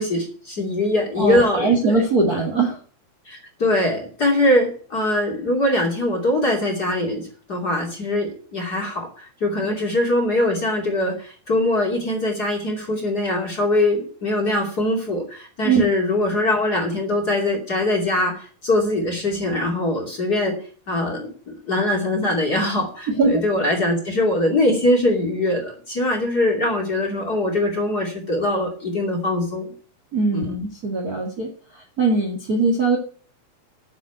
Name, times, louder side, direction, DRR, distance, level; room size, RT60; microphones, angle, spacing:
voice 1, 0.0-2.0 3.2-29.7 30.3-30.5, left 1 dB, 30° left, 1 dB, 2.7 m, -22 dB
voice 2, 1.2-2.8 15.6-15.8 23.2-23.4 30.1-33.0, right 3 dB, 35° right, 2 dB, 1.7 m, -21 dB
9.6 x 7.4 x 9.3 m, 0.43 s
omnidirectional pair, 4.3 m